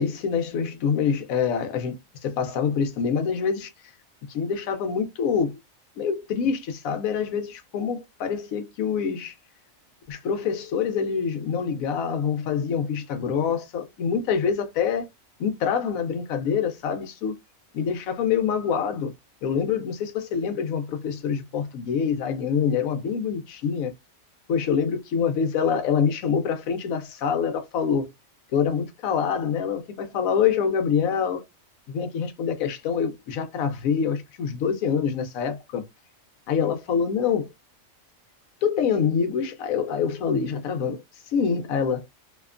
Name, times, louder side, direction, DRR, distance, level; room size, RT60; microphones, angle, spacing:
voice 1, 0.0-3.7 4.3-5.6 6.0-9.3 10.1-15.1 15.4-17.3 17.7-19.1 19.4-23.9 24.5-28.1 28.5-31.4 31.9-35.8 36.5-37.5 38.6-41.0 41.3-42.0, left 7 dB, 80° left, 1.0 m, -25 dB
2.8 x 2.1 x 2.4 m
omnidirectional pair, 1.4 m